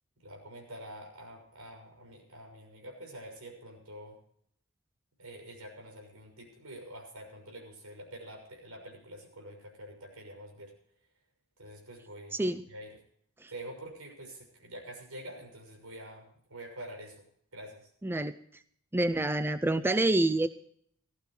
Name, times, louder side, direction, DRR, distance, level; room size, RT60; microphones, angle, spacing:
voice 1, 0.2-4.2 5.2-10.7 11.6-12.4 12.7-13.0 13.5-17.2 17.5-17.9, right 1 dB, 80° right, 2 dB, 6.3 m, -46 dB
voice 2, 12.3-12.6 13.4-13.5 18.0-18.3 18.9-20.5, right 2 dB, 10° right, 11 dB, 0.4 m, -27 dB
18.5 x 14.5 x 3.2 m, 0.64 s
head